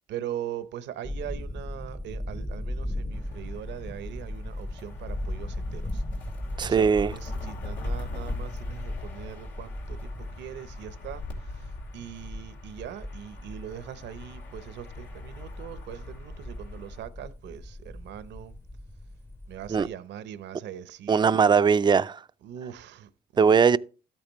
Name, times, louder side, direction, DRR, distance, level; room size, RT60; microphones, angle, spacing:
voice 1, 0.1-6.0 6.6-18.5 19.5-21.3 22.4-23.8, right 10 dB, 75° right, 0.8 m, -41 dB
sound 1, 1.0-19.9, left 1 dB, 15° left, 0.7 m, -37 dB
sound 2, 3.1-17.0, left 3 dB, 85° left, 2.6 m, -43 dB
voice 2, 6.6-7.1 19.7-19.9 21.1-22.2 23.4-23.8, right 6 dB, 25° right, 0.4 m, -20 dB
12.5 x 8.8 x 3.1 m
cardioid pair, 85°, 18 cm